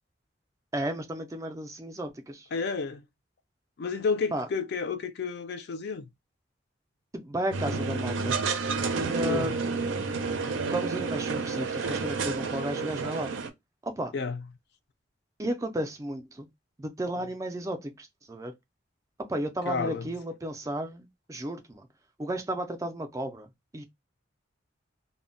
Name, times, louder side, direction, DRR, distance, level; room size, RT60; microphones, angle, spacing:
voice 1, 0.7-2.5 4.3-4.5 7.1-8.4 8.9-9.9 10.7-13.3 13.8-14.1 15.4-16.5 16.8-18.5 19.2-21.9 22.2-23.8, right 1 dB, 15° right, 0.3 m, -33 dB
voice 2, 2.5-3.0 3.8-6.1 9.2-9.5 14.1-14.4 19.7-20.1, left 5 dB, 55° left, 0.4 m, -31 dB
sound 1, 7.5-13.5, right 4 dB, 80° right, 0.5 m, -30 dB
2.1 x 2.0 x 3.7 m
head